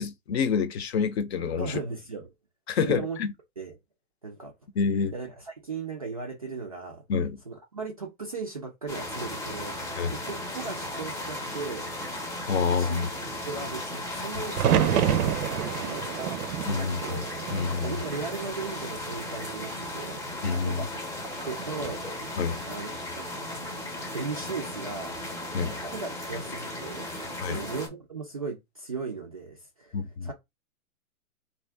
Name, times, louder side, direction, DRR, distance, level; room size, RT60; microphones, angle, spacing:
voice 1, 0.0-1.7 2.7-3.3 4.8-5.1 7.1-7.3 10.0-10.1 12.5-13.1 16.7-18.0 20.4-20.9 22.4-22.6 25.5-25.7 27.4-27.6 29.9-30.3, left 5 dB, 45° left, 0.7 m, -27 dB
voice 2, 1.6-2.3 2.8-3.2 3.6-3.8 4.2-4.5 5.1-7.0 7.5-11.9 12.6-15.5 15.8-17.3 17.8-20.2 20.6-20.9 21.5-22.1 22.7-23.5 24.1-25.2 25.6-30.3, right 4 dB, 25° right, 0.4 m, -37 dB
sound 1, 8.9-27.9, left 1 dB, 10° left, 0.8 m, -36 dB
sound 2, 14.5-18.6 18.9-19.7 21.6-22.1, right 9 dB, 85° right, 0.6 m, -28 dB
3.5 x 2.7 x 3.3 m
hypercardioid pair, 145°, 44 cm